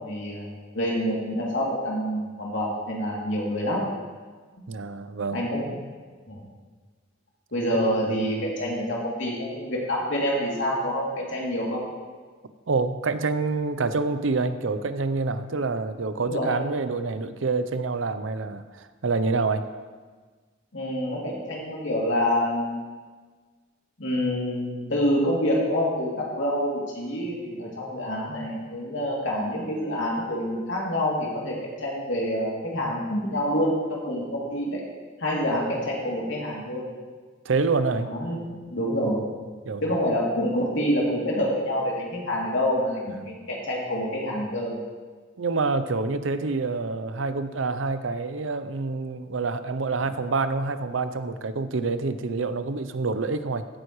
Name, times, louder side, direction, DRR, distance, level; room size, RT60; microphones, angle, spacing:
voice 1, 0.0-3.8 5.3-5.8 6.3-6.4 7.5-11.8 16.2-16.6 20.7-22.8 24.0-34.8 35.2-36.8 38.0-39.3 39.8-44.7, equal, 70° left, -4 dB, 2.9 m, -27 dB
voice 2, 4.7-5.4 12.7-19.6 37.5-38.1 39.7-39.8 43.2-43.3 45.4-53.7, right 3 dB, 75° right, 11 dB, 0.6 m, -27 dB
15.0 x 9.3 x 3.1 m, 1.4 s
head